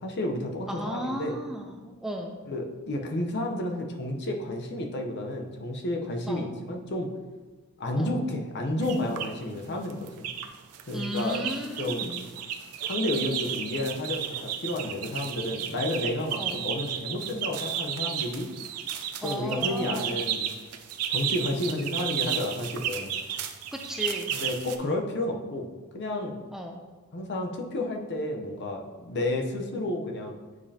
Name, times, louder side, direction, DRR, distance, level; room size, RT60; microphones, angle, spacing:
voice 1, 0.0-1.4 2.5-7.1 7.8-10.3 10.9-11.4 11.8-12.2 12.8-18.5 19.2-20.5 21.1-23.1 24.3-25.7 25.9-26.4 27.1-30.4, left 1 dB, 50° left, 2 dB, 0.8 m, -31 dB
voice 2, 0.7-2.4 6.3-6.5 8.0-8.2 10.9-12.2 16.4-16.6 19.2-20.2 23.7-24.3 26.5-26.8, equal, ahead, 1 dB, 0.4 m, -35 dB
sound 1, 8.8-9.3 9.8-10.5 10.7-24.8, right 9 dB, 85° right, 0.6 m, -33 dB
9.4 x 5.1 x 2.8 m, 1.3 s
head